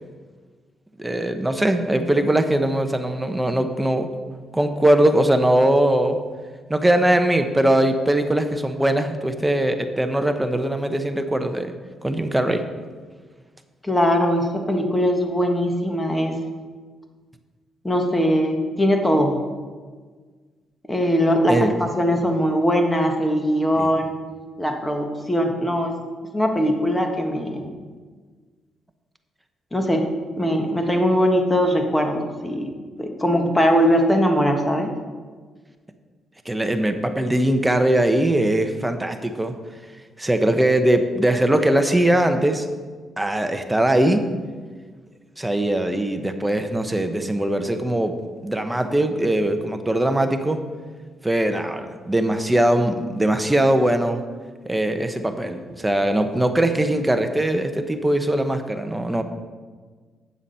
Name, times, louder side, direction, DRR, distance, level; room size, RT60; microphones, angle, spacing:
voice 1, 1.0-4.1 4.5-6.2 6.7-11.7 12.0-12.6 21.5-21.7 23.8-23.9 36.5-39.6 40.2-42.7 43.2-44.2 45.4-48.1 48.4-50.6 51.2-54.2 54.7-59.2, right 1 dB, 10° right, 7 dB, 0.9 m, -21 dB
voice 2, 13.8-16.4 17.8-19.4 20.9-24.1 24.6-25.9 26.3-27.7 29.7-30.1 30.3-32.7 33.0-34.9, equal, 10° left, 3 dB, 1.5 m, -21 dB
8.9 x 7.1 x 5.5 m, 1.5 s
cardioid pair, 90°, 0 cm